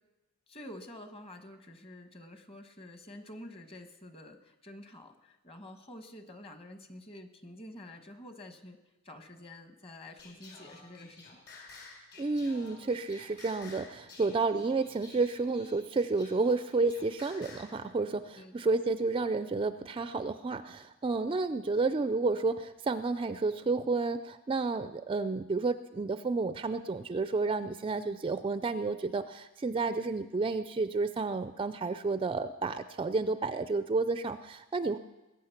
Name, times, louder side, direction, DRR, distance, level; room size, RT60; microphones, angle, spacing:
voice 1, 0.5-8.8 9.0-11.3 18.3-18.7, left 1 dB, 25° left, 7 dB, 1.2 m, -48 dB
Singing, 10.2-17.8, left 3 dB, 50° left, 3.9 m, -52 dB
voice 2, 12.2-35.0, right 3 dB, 25° right, 12 dB, 0.4 m, -31 dB
20.5 x 8.7 x 5.8 m, 1.1 s
head